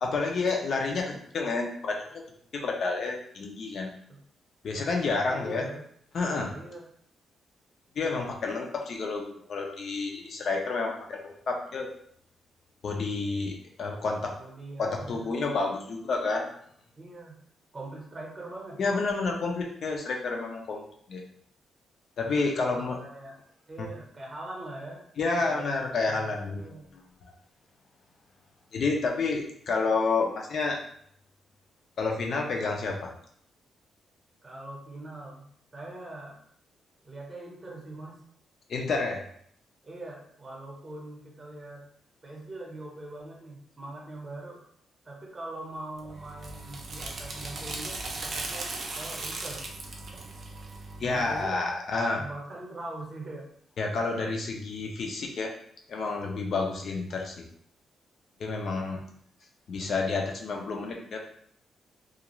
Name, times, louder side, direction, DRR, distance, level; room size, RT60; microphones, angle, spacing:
voice 1, 0.0-2.2 2.5-3.9 4.6-5.6 6.1-6.5 8.0-11.9 12.8-14.3 14.8-16.4 18.8-20.8 21.1-21.2 22.2-23.0 23.8-23.9 25.2-26.6 26.9-27.3 28.7-30.8 32.0-33.1 38.7-39.2 51.0-52.2 53.8-55.5 55.9-57.4 58.4-59.0 59.7-61.2, left 3 dB, 50° left, 1 dB, 0.5 m, -29 dB
voice 2, 5.2-5.8 6.5-6.9 14.4-15.4 17.0-17.4 17.7-18.8 22.3-23.4 23.7-25.0 25.4-26.9 34.4-35.5 35.7-36.4 37.0-38.2 39.8-41.9 42.2-44.6 45.0-49.7 51.0-51.6 52.1-53.5, right 2 dB, 20° right, -2 dB, 0.8 m, -42 dB
sound 1, 46.0-51.5, right 2 dB, 45° right, 0.4 m, -38 dB
2.4 x 2.4 x 2.9 m, 0.65 s
wide cardioid pair, 150°, 0 cm